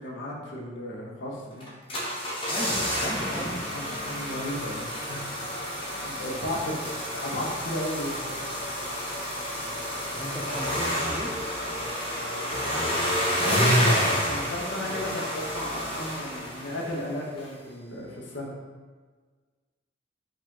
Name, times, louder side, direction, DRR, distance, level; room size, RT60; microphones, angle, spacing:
voice 1, 0.0-1.7 3.0-6.8 7.1-8.2 10.1-10.3 13.1-18.5, left 1 dB, 70° left, -2 dB, 0.9 m, -34 dB
sound 1, 1.6-17.1 17.4-17.5, equal, 30° left, 0.7 m, -29 dB
voice 2, 2.5-3.8 9.7-11.4, equal, 10° right, -1 dB, 0.5 m, -37 dB
5.0 x 2.5 x 3.7 m, 1.5 s
head